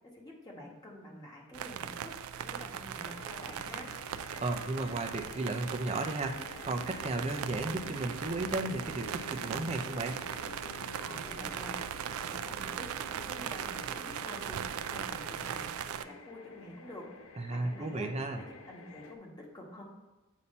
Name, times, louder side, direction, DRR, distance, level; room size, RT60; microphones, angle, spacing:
voice 1, 0.0-3.9 11.0-11.8 12.2-14.6 14.9-17.1 17.5-18.1 18.4-19.8, equal, 20° left, -3 dB, 1.3 m, -48 dB
sound 1, 1.5-16.0, right 9 dB, 85° right, 0.3 m, -39 dB
sound 2, 2.9-19.2, left 3 dB, 80° left, 0.6 m, -50 dB
voice 2, 4.4-10.2 17.4-18.4, right 2 dB, 30° right, 4 dB, 0.6 m, -34 dB
8.3 x 2.8 x 5.4 m, 1.1 s
head